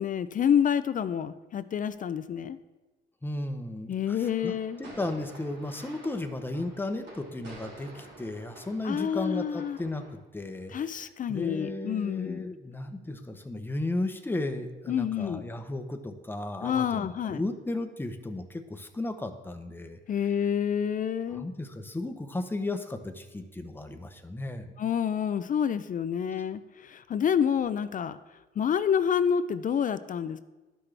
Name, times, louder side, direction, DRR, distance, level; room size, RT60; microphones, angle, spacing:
voice 1, 0.0-2.6 3.9-4.8 8.8-9.8 10.7-12.5 14.9-15.5 16.6-17.4 20.1-21.5 24.8-28.2 28.6-30.4, left 8 dB, 40° left, 13 dB, 0.4 m, -28 dB
voice 2, 3.2-20.0 21.3-24.7, left 2 dB, 10° left, 7 dB, 0.8 m, -35 dB
sound 1, 4.2-10.1, right 2 dB, 65° right, 2.9 m, -49 dB
12.0 x 5.9 x 3.3 m, 1.1 s
cardioid pair, 90°, 20 cm